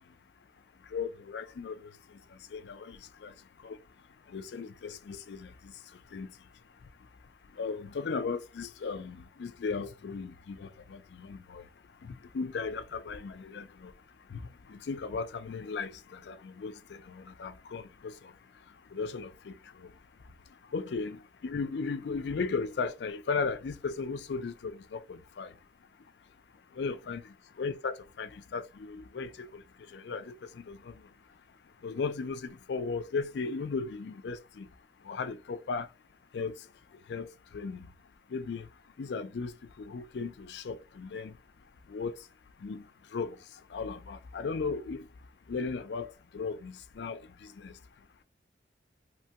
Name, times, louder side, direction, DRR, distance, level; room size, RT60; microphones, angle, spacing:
voice 1, 0.9-3.3 3.6-3.8 4.3-5.7 6.1-6.3 7.6-11.6 12.0-13.9 14.3-18.3 18.9-19.9 20.7-25.5 26.7-29.6 29.9-31.0 31.8-34.7 35.0-35.9 36.3-36.6 37.1-37.9 38.3-38.7 39.0-41.4 41.9-42.2 42.6-42.9 43.1-43.4 43.7-45.1 45.5-47.7, left 4 dB, 70° left, 0.4 m, -36 dB
3.0 x 2.2 x 2.8 m
head